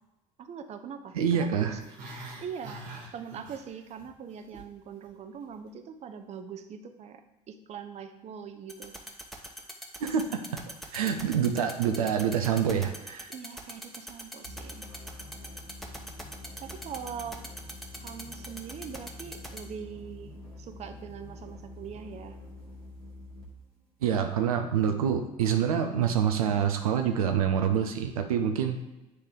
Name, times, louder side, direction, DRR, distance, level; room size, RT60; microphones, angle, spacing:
voice 1, 0.4-1.8 2.4-7.2 7.5-8.9 13.3-14.9 16.6-17.5 18.0-20.3 20.6-22.4, right 7 dB, 35° right, 7 dB, 0.7 m, -42 dB
voice 2, 1.1-1.8 10.0-10.4 10.9-13.3 24.0-28.8, right 8 dB, 75° right, 5 dB, 0.6 m, -26 dB
Growling, 1.7-4.1 4.3-4.7 5.1-5.2, right 1 dB, 55° right, 1.6 m, -44 dB
sound 1, 8.7-19.6, equal, ahead, 1.1 m, -40 dB
tension-arpeggio-loop, 14.4-23.6, left 1 dB, 70° left, 1.7 m, -46 dB
9.4 x 3.2 x 3.7 m, 1.0 s
figure-of-eight pair, 55°, 19 cm